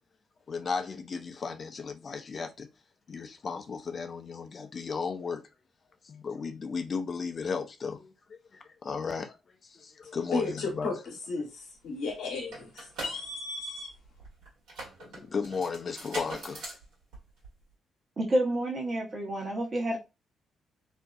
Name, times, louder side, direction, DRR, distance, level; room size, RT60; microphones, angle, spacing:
voice 1, 0.5-2.7 3.1-5.4 6.0-9.4 9.6-10.9 15.0-16.7, left 5 dB, 45° left, 0.4 m, -35 dB
voice 2, 10.3-13.9, left 3 dB, 70° left, 0.9 m, -34 dB
sound 1, 11.8-11.9 12.1-17.7, right 2 dB, 75° right, 1.2 m, -43 dB
voice 3, 18.2-20.0, right 1 dB, 45° right, 0.9 m, -29 dB
2.6 x 2.2 x 2.4 m
hypercardioid pair, 40°, 0 cm